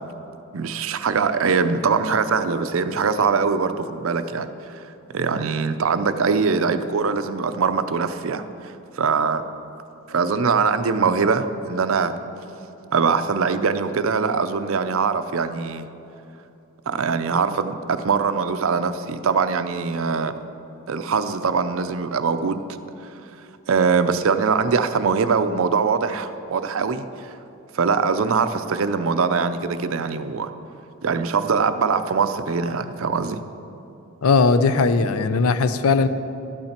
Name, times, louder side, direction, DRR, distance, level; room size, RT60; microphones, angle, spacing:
voice 1, 0.5-4.9 5.1-8.4 9.0-9.4 10.1-12.1 12.9-15.9 16.9-20.3 20.9-22.6 23.7-27.3 27.7-30.5 31.0-33.4, right 5 dB, 70° right, 11 dB, 0.5 m, -22 dB
voice 2, 34.2-36.1, left 4 dB, 85° left, 12 dB, 0.5 m, -18 dB
12.5 x 8.7 x 4.4 m, 2.9 s
head